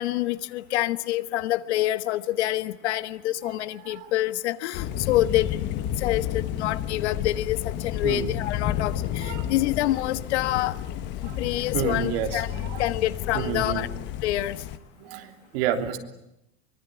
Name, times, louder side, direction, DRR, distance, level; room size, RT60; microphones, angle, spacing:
voice 1, 0.0-10.8 11.4-12.5 12.8-13.9 14.2-14.6, left 15 dB, 85° left, 13 dB, 1.5 m, -27 dB
Thunder, 4.7-14.8, left 10 dB, 35° left, 1.2 m, -31 dB
voice 2, 11.7-12.9 13.3-13.8 15.0-16.0, right 10 dB, 60° right, 5 dB, 3.3 m, -30 dB
24.0 x 24.0 x 9.3 m, 0.84 s
supercardioid pair, 175°, 33 cm